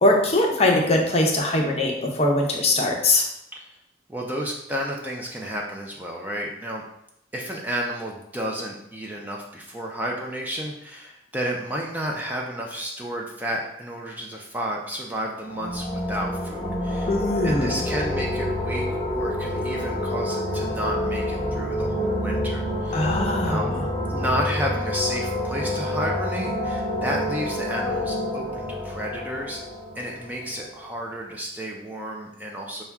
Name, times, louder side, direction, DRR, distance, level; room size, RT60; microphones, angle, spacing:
voice 1, 0.0-3.3 17.1-17.8 22.9-23.8, left 2 dB, 35° left, 0 dB, 0.6 m, -21 dB
voice 2, 4.1-6.8 7.3-17.1 17.4-18.9 19.1-23.2 23.4-23.7 24.1-29.6 30.0-32.8, equal, 10° right, -1 dB, 0.4 m, -31 dB
sound 1, 15.4-31.0, left 1 dB, 15° left, 1.0 m, -28 dB
5.6 x 2.2 x 3.5 m, 0.78 s
head